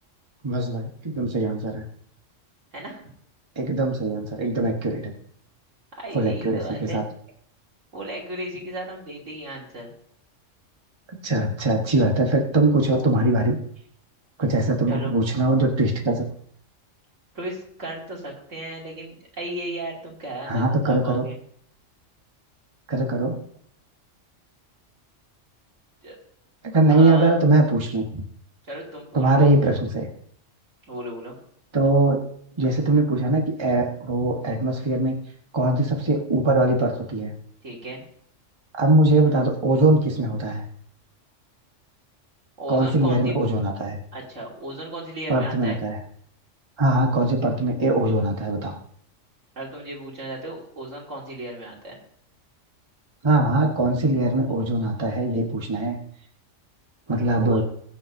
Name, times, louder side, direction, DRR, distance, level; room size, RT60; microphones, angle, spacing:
voice 1, 0.4-1.8 3.6-5.1 6.1-7.0 11.2-13.6 14.4-16.2 20.5-21.3 22.9-23.4 26.6-28.2 29.1-30.1 31.7-32.2 32.6-35.2 35.5-37.3 38.7-40.6 42.7-44.0 45.3-46.0 46.8-48.8 53.2-56.0 57.1-57.6, right 2 dB, 25° right, 1 dB, 1.3 m, -21 dB
voice 2, 6.0-7.1 7.9-9.9 14.9-15.1 17.3-21.3 26.0-26.2 26.9-27.3 28.7-29.5 30.9-31.4 37.6-38.0 42.6-43.3 44.1-45.8 49.6-52.0 57.4-57.6, right 1 dB, 70° right, -3 dB, 3.3 m, -35 dB
21.5 x 7.3 x 2.7 m, 0.64 s
omnidirectional pair, 1.3 m